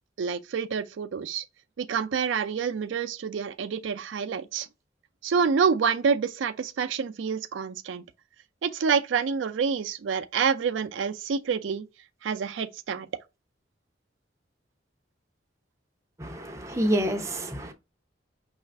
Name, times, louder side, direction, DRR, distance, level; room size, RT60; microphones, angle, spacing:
voice 1, 0.2-1.4 1.8-4.7 5.2-8.0 8.6-11.8 12.2-13.1, right 6 dB, 90° right, 0.4 m, -27 dB
voice 2, 16.2-17.7, right 1 dB, 15° right, 0.6 m, -28 dB
5.5 x 2.4 x 3.3 m
head